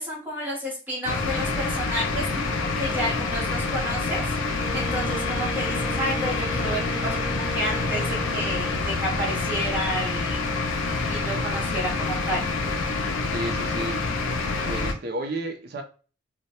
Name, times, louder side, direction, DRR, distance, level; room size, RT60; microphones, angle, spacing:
voice 1, 0.0-2.4 2.8-4.2 4.7-10.5 11.1-12.4, equal, 10° right, 0.9 m, -31 dB
sound 1, 1.1-14.9, left 3 dB, 80° left, 0.4 m, -27 dB
Wind instrument woodwind instrument, 4.6-8.9, right 2 dB, 55° left, 0.9 m, -37 dB
voice 2, 13.3-14.0 14.6-15.8, right 1 dB, 50° right, 0.4 m, -32 dB
2.2 x 2.1 x 2.8 m
head